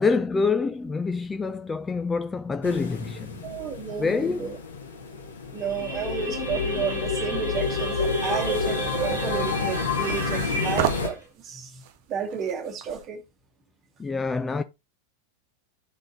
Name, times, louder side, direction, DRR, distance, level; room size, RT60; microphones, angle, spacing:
voice 1, 0.0-3.5 4.0-4.5 14.0-14.6, left 4 dB, 15° left, 0.3 m, -26 dB
sound 1, 2.6-11.1, left 4 dB, 70° left, 1.2 m, -33 dB
voice 2, 3.4-4.6 5.5-11.8 12.1-13.2, right 6 dB, 30° right, 1.2 m, -32 dB
sound 2, 5.6-11.1, left 2 dB, 90° left, 3.0 m, -29 dB
sound 3, 8.0-13.1, right 11 dB, 50° right, 0.5 m, -35 dB
11.0 x 3.8 x 2.7 m
figure-of-eight pair, 90°, 0 cm